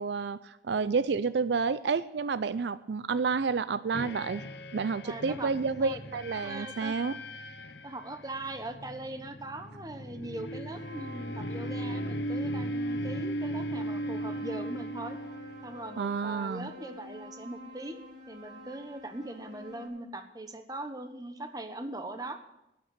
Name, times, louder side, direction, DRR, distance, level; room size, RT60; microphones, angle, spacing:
voice 1, 0.0-4.5 4.7-7.2 16.0-16.7, right 5 dB, 70° right, 15 dB, 0.4 m, -30 dB
sound 1, 3.9-16.0, equal, 70° left, 0.9 m, -37 dB
voice 2, 5.0-5.5 5.8-6.0 6.4-7.0 7.8-15.2 15.6-22.4, right 2 dB, 20° right, 8 dB, 1.1 m, -40 dB
sound 2, 10.7-19.9, left 1 dB, 40° right, 4.8 m, -48 dB
11.5 x 8.9 x 9.8 m, 0.89 s
head